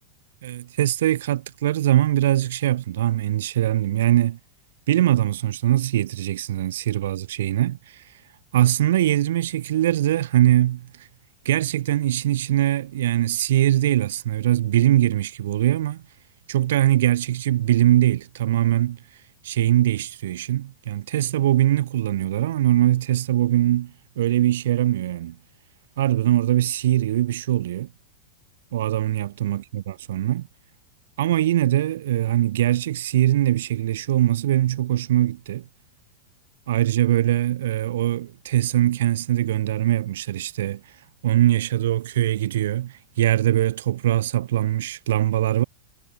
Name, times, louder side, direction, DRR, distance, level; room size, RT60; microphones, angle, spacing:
voice 1, 0.4-4.4 4.9-8.0 8.5-10.9 11.5-16.0 16.5-19.0 19.4-25.4 26.0-27.9 28.7-30.5 31.2-35.6 36.7-40.8 41.2-45.6, right 13 dB, 60° right, 3.9 m, -22 dB
figure-of-eight pair, 90°, 0 cm